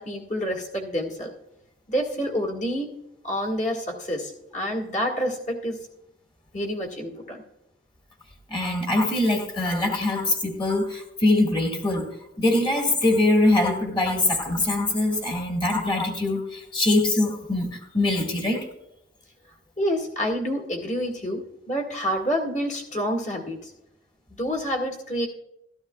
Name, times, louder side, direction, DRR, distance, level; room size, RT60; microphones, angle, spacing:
voice 1, 0.0-1.3 1.9-2.9 3.2-5.8 6.5-7.4 19.8-23.7 24.4-25.3, equal, 40° left, 0 dB, 1.9 m, -28 dB
voice 2, 8.5-12.1 12.4-18.7, left 2 dB, 25° left, 2 dB, 1.7 m, -23 dB
14.5 x 13.0 x 2.3 m, 0.85 s
head